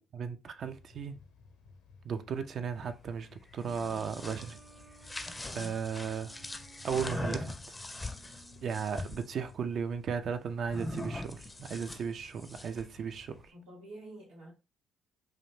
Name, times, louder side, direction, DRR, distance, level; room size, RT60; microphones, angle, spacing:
voice 1, 0.1-1.2 2.0-4.6 5.5-6.4 6.8-7.8 8.6-13.5, right 6 dB, 55° right, 0.3 m, -36 dB
sound 1, 0.6-13.4, left 3 dB, 75° left, 0.5 m, -58 dB
sound 2, 3.5-9.3 10.7-12.9, left 2 dB, 20° left, 0.4 m, -41 dB
sound 3, 3.6-8.8, right 5 dB, 35° right, 0.7 m, -59 dB
voice 2, 5.4-5.8 13.5-14.5, equal, 75° right, 0.9 m, -48 dB
2.5 x 2.0 x 3.0 m
hypercardioid pair, 50°, 0 cm